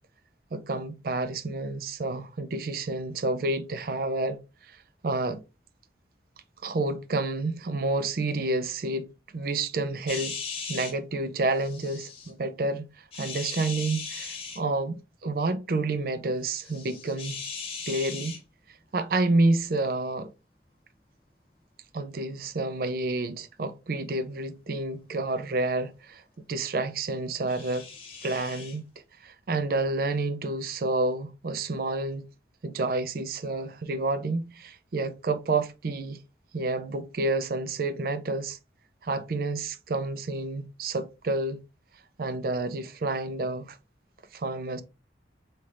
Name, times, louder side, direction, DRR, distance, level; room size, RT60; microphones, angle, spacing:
voice 1, 0.5-4.4 5.0-5.4 6.6-9.1 9.3-10.4 10.7-17.3 17.9-18.4 18.9-20.3 21.9-26.2 26.5-27.9 28.2-28.8 29.2-32.2 32.6-36.2 36.5-38.6 39.0-41.6 42.2-43.8 44.3-44.8, right 2 dB, 55° right, 0.4 m, -29 dB
sound 1, 10.1-10.9 11.6-12.3 13.1-14.6 16.5-18.4 27.5-28.8, left 5 dB, 30° left, 1.1 m, -38 dB
4.3 x 3.2 x 2.5 m
head